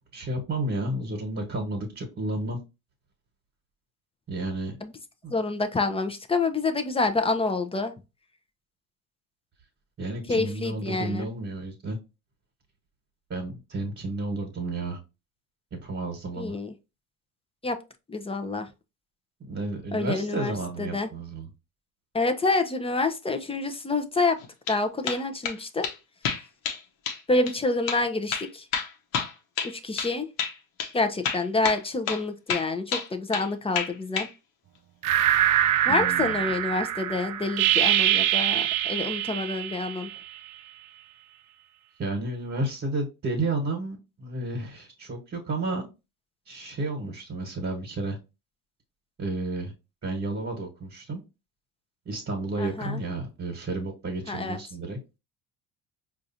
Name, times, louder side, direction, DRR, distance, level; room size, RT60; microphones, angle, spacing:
voice 1, 0.1-2.6 4.3-4.8 10.0-12.0 13.3-15.0 15.7-16.5 19.5-21.5 35.9-36.4 42.0-45.9 46.5-48.2 49.2-49.7 50.0-51.2 52.0-55.0, right 2 dB, 35° right, 1.3 m, -31 dB
voice 2, 5.3-7.9 10.3-11.3 16.4-16.7 17.6-17.8 18.1-18.7 19.9-21.1 22.1-24.4 24.7-25.9 27.3-28.7 29.6-30.3 30.9-34.3 35.9-40.1 52.6-53.0 54.3-54.6, left 3 dB, 15° left, 0.6 m, -27 dB
man claping slow, 24.4-24.8 25.1-25.6 25.8-26.0 26.2-26.8 27.1-27.2 27.5-27.6 27.9-28.0 28.3-30.1 30.4-30.5 30.8-30.9 31.2-32.2 32.5-33.5 33.8-34.3, left 6 dB, 80° left, 1.0 m, -29 dB
sound 1, 35.0-40.5, right 12 dB, 55° right, 0.5 m, -24 dB
4.7 x 2.5 x 2.7 m
supercardioid pair, 85°, 37 cm